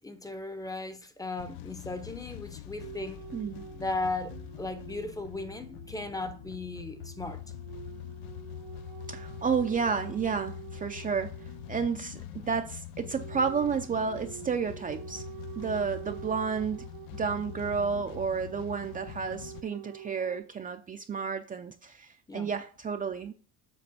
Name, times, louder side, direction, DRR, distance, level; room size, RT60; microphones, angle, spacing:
voice 1, 0.0-3.2 3.7-7.4 22.3-22.5, left 2 dB, 10° left, 0.7 m, -36 dB
sound 1, 1.4-19.6, left 12 dB, 90° left, 0.6 m, -44 dB
sound 2, 2.8-11.9 13.0-20.4, right 11 dB, 75° right, 0.8 m, -47 dB
voice 2, 3.3-3.6 9.1-11.3 11.7-15.2 15.6-16.9 17.1-23.3, right 6 dB, 25° right, 0.5 m, -31 dB
7.8 x 3.3 x 6.1 m
cardioid pair, 120°, 34 cm